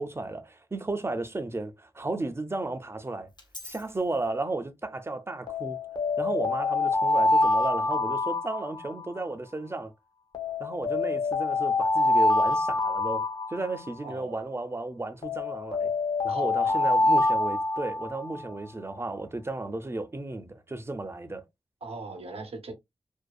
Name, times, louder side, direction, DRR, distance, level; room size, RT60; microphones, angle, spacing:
voice 1, 0.0-3.3 3.6-5.8 6.2-9.9 10.6-15.9 16.2-21.4, right 2 dB, 25° right, 0.5 m, -34 dB
Alarm, 3.4-3.8 5.5-9.2 10.3-14.1 15.2-18.4, left 2 dB, 45° left, 0.8 m, -26 dB
voice 2, 14.0-14.4 16.3-16.9 21.8-22.7, right 3 dB, 75° right, 0.7 m, -40 dB
2.6 x 2.2 x 2.2 m
cardioid pair, 50°, 10 cm